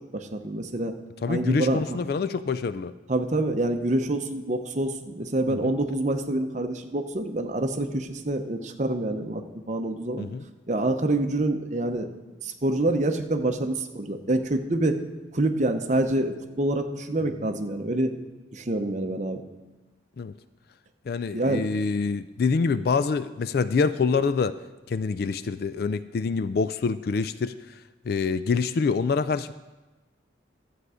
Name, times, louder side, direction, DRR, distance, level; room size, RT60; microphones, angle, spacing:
voice 1, 0.1-0.9 1.3-2.0 3.1-10.3 10.7-12.1 12.4-15.0 15.3-18.1 18.5-19.4 21.3-21.7, right 2 dB, 40° right, 6 dB, 0.8 m, -26 dB
voice 2, 1.2-2.9 5.5-5.7 10.2-10.4 20.2-20.3 21.1-24.5 24.9-27.8 28.0-29.5, left 4 dB, 50° left, 14 dB, 0.3 m, -26 dB
12.0 x 8.0 x 4.9 m, 1.2 s
head